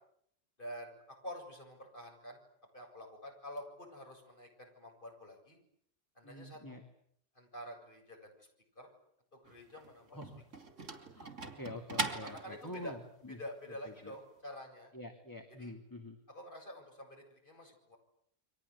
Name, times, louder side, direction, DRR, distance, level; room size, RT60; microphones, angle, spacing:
voice 1, 0.6-2.4 2.7-5.6 6.2-6.8 7.3-8.5 8.8-8.9 9.3-10.2 12.1-12.9 13.3-14.9 15.6-15.8 16.3-18.0, equal, 45° left, 2 dB, 8.2 m, -48 dB
voice 2, 6.2-6.8 10.1-10.4 11.1-13.0 13.2-13.4 14.0-14.1 14.9-16.2, left 1 dB, 15° left, 4 dB, 2.7 m, -46 dB
sound 1, 9.5-13.0, right 3 dB, 75° right, 3.2 m, -41 dB
29.5 x 24.0 x 8.3 m, 0.69 s
omnidirectional pair, 1.3 m